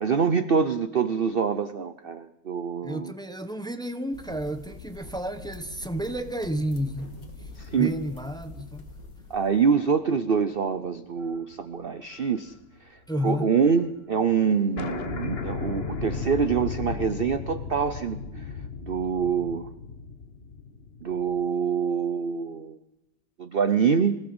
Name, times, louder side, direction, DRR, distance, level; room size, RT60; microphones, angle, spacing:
voice 1, 0.0-3.1 7.6-7.9 9.3-12.5 13.2-18.4 18.8-19.7 21.0-22.8 23.4-24.1, right 6 dB, 45° right, 0.8 m, -25 dB
voice 2, 2.8-8.9 13.1-13.5, equal, 5° left, 1.2 m, -31 dB
sound 1, 4.1-9.7, left 3 dB, 55° left, 3.0 m, -45 dB
sound 2, 6.9-9.1 9.6-9.7 11.2-11.6 11.8-13.3 13.6-13.7 13.8-13.9 14.3-14.4 14.8-21.5, left 4 dB, 35° left, 1.5 m, -36 dB
24.5 x 17.0 x 8.0 m
omnidirectional pair, 1.8 m